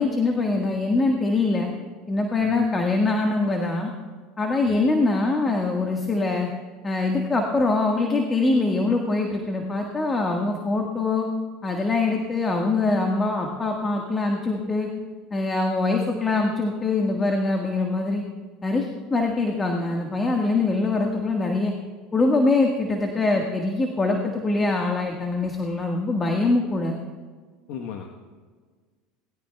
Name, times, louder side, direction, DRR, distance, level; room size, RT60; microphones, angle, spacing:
voice 1, 0.0-1.7 2.1-3.9 4.4-6.5 6.8-11.3 11.6-14.9 15.3-18.2 18.6-21.7 22.1-26.9, left 3 dB, 25° left, 2 dB, 1.6 m, -23 dB
voice 2, 27.7-28.2, left 7 dB, 65° left, 2 dB, 1.1 m, -36 dB
20.5 x 14.0 x 2.3 m, 1.5 s
hypercardioid pair, 90°, 0 cm